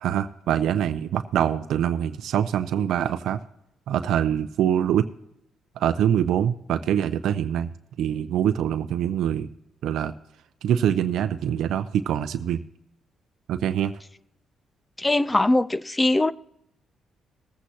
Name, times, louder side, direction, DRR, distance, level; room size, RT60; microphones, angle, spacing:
voice 1, 0.0-3.4 3.9-5.1 5.8-7.7 8.0-9.5 9.8-10.1 10.6-12.6 13.5-13.9, right 9 dB, 80° right, 0.6 m, -24 dB
voice 2, 15.0-16.3, left 2 dB, 15° left, 0.5 m, -21 dB
20.5 x 8.3 x 2.9 m
cardioid pair, 90°, 0 cm